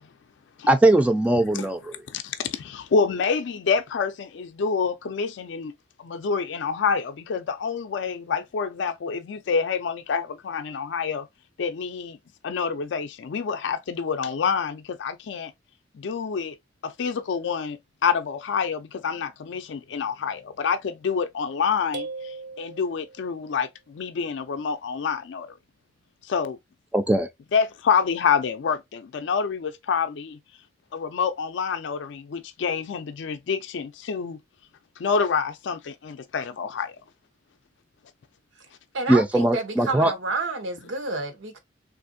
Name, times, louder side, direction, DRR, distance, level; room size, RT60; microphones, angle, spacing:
voice 1, 0.7-1.9 26.9-27.3 39.1-40.1, right 1 dB, 5° right, 0.3 m, -20 dB
voice 2, 2.1-5.7 6.0-11.3 11.6-12.2 12.4-15.5 15.9-16.6 16.8-25.5 26.2-26.6 27.5-30.4 30.9-34.4 35.0-37.0, left 6 dB, 70° left, 0.4 m, -27 dB
sound 1, 21.9-23.5, right 4 dB, 65° right, 0.5 m, -38 dB
voice 3, 38.9-41.6, right 3 dB, 85° right, 0.9 m, -30 dB
3.4 x 2.5 x 2.5 m
head